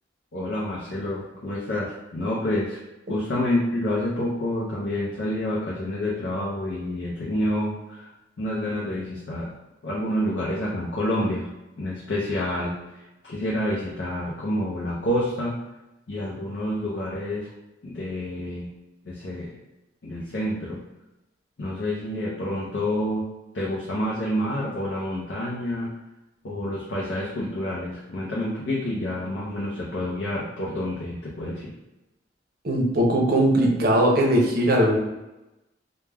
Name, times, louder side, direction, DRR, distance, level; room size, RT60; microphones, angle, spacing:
voice 1, 0.3-2.8 3.1-8.1 8.4-9.5 9.8-11.5 11.8-15.6 16.1-17.5 17.8-18.7 19.0-19.5 20.0-20.8 21.6-23.2 23.5-25.9 26.4-31.7, left 1 dB, 70° left, -5 dB, 0.5 m, -28 dB
voice 2, 32.6-35.0, right 1 dB, 55° right, 0 dB, 0.5 m, -20 dB
2.2 x 2.0 x 3.3 m, 0.98 s
head